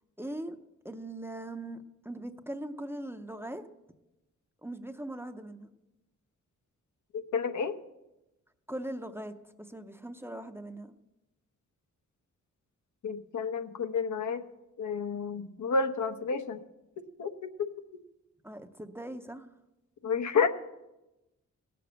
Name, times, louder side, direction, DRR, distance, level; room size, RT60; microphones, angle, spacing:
voice 1, 0.2-0.6 0.8-1.8 2.0-3.6 4.6-5.7 8.7-10.9 18.4-19.5, right 1 dB, 10° right, 7 dB, 0.6 m, -40 dB
voice 2, 7.3-7.8 13.0-14.4 14.8-16.6 17.2-17.7 20.0-20.5, left 5 dB, 80° left, 8 dB, 1.0 m, -30 dB
17.0 x 6.8 x 7.7 m, 0.96 s
wide cardioid pair, 170°, 30 cm